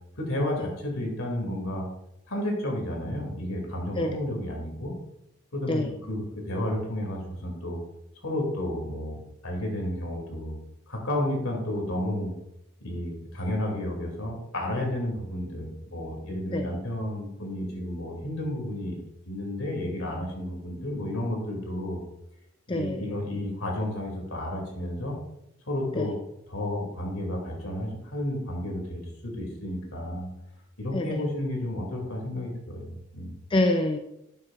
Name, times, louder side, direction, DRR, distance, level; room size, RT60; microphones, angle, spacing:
voice 1, 0.2-1.9 2.3-4.9 5.5-7.8 8.2-9.2 9.4-10.5 10.9-12.3 12.8-19.0 19.3-22.0 22.7-25.1 25.7-26.2 26.5-30.3 30.8-33.3, left 1 dB, 75° left, 0 dB, 2.4 m, -31 dB
voice 2, 22.7-23.1 25.9-26.1 30.9-31.2 33.5-34.0, left 1 dB, 25° left, 4 dB, 0.4 m, -26 dB
11.5 x 6.5 x 2.4 m, 0.82 s
head